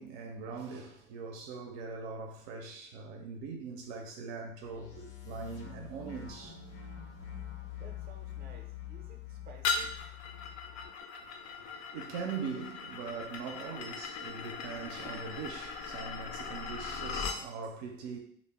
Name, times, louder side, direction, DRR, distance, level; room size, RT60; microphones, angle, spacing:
voice 1, 0.0-6.6 11.2-18.2, right 5 dB, 85° right, 0.5 m, -41 dB
sound 1, 4.6-10.9, left 10 dB, 85° left, 0.8 m, -45 dB
voice 2, 7.8-10.0, right 4 dB, 30° right, 0.5 m, -55 dB
sound 2, 9.6-17.4, left 5 dB, 55° left, 0.4 m, -39 dB
2.1 x 2.0 x 3.4 m
supercardioid pair, 80°, 31 cm